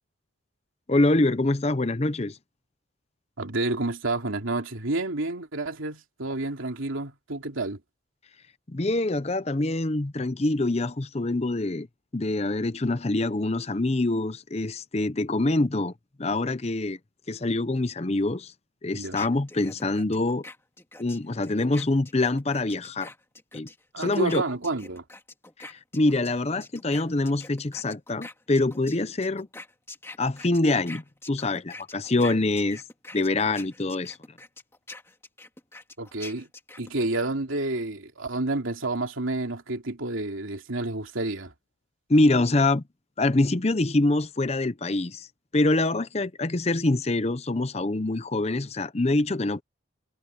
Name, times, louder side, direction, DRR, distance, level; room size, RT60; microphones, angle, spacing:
voice 1, 0.9-2.4 8.7-11.9 12.1-15.9 16.2-17.0 17.3-18.5 18.8-20.4 21.0-23.1 23.5-23.7 24.0-24.4 25.7-29.5 30.2-32.8 33.1-34.2 42.1-42.8 43.2-45.3 45.5-49.6, left 2 dB, 30° left, 0.7 m, -25 dB
voice 2, 3.4-7.8 18.9-19.2 23.9-25.0 36.0-36.5 36.8-41.5, right 2 dB, 80° right, 2.8 m, -29 dB
sound 1, 19.2-26.3 26.6-37.1, left 2 dB, 10° left, 2.3 m, -45 dB
head